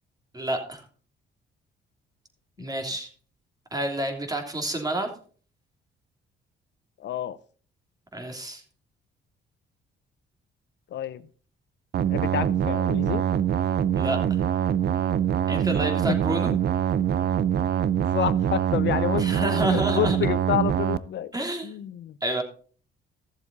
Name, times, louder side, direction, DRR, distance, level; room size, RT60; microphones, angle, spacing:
voice 1, 0.3-0.8 2.6-3.1 3.7-5.1 8.1-8.6 13.9-14.4 15.5-16.5 19.2-20.2 21.3-21.7 22.2-22.4, right 1 dB, 20° right, 3 dB, 3.0 m, -29 dB
voice 2, 7.0-7.4 10.9-11.3 12.1-13.2 18.1-21.3 21.6-22.2, left 11 dB, 65° left, 16 dB, 0.8 m, -29 dB
sound 1, 11.9-21.0, right 9 dB, 55° right, 0.6 m, -24 dB
15.0 x 7.3 x 4.0 m, 0.43 s
cardioid pair, 90°, 20 cm